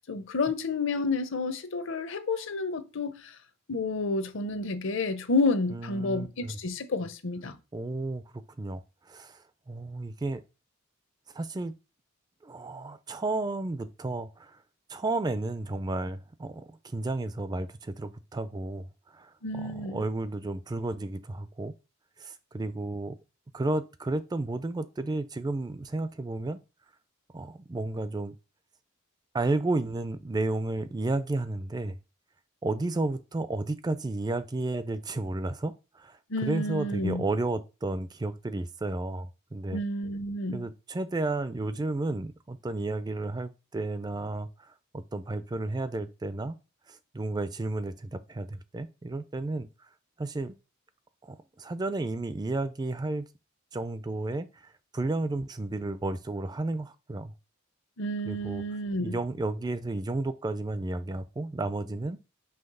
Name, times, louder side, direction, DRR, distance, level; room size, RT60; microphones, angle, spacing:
voice 1, 0.1-3.3 3.7-7.5 19.4-20.0 36.3-37.2 39.7-40.7 58.0-59.2, left 2 dB, 60° left, 0.7 m, -30 dB
voice 2, 5.7-6.6 7.7-8.2 8.6-10.4 11.3-11.7 12.4-14.6 14.9-21.7 22.2-23.2 23.5-26.6 27.3-28.4 29.3-32.0 32.6-39.8 40.5-46.6 46.9-49.7 50.2-50.6 51.2-53.3 53.7-57.3 58.3-58.6 59.0-62.2, right 2 dB, 20° right, 0.3 m, -32 dB
5.7 x 3.1 x 5.3 m
head